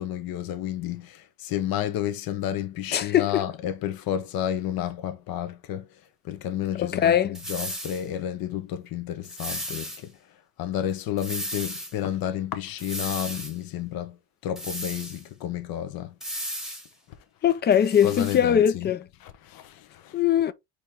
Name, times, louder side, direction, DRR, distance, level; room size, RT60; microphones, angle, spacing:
voice 1, 0.0-5.9 6.3-10.1 10.6-14.2 14.4-16.1 18.0-18.9 19.2-20.2, left 11 dB, 55° left, 0.9 m, -31 dB
voice 2, 2.9-3.5 6.8-7.4 17.4-19.1 20.1-20.5, left 9 dB, 25° left, 0.3 m, -21 dB
sound 1, 7.3-8.0 9.2-10.0 11.2-11.9 12.8-13.5 14.6-15.2 16.2-16.9 17.7-18.4, equal, ahead, 1.3 m, -35 dB
4.3 x 3.1 x 3.3 m
cardioid pair, 110°, 42 cm